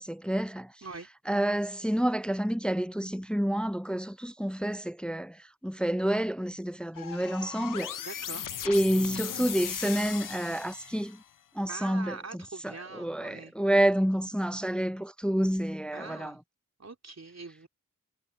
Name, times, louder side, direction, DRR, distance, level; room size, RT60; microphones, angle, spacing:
voice 1, 0.0-0.7 1.3-8.0 8.6-11.2 11.5-16.4, right 1 dB, 5° left, 0.4 m, -29 dB
sound 1, 7.0-11.3, left 10 dB, 70° left, 0.5 m, -38 dB
voice 2, 8.0-8.5 11.7-13.5 15.9-16.4 16.8-17.7, right 3 dB, 50° right, 3.6 m, -43 dB
cardioid pair, 45°, 33 cm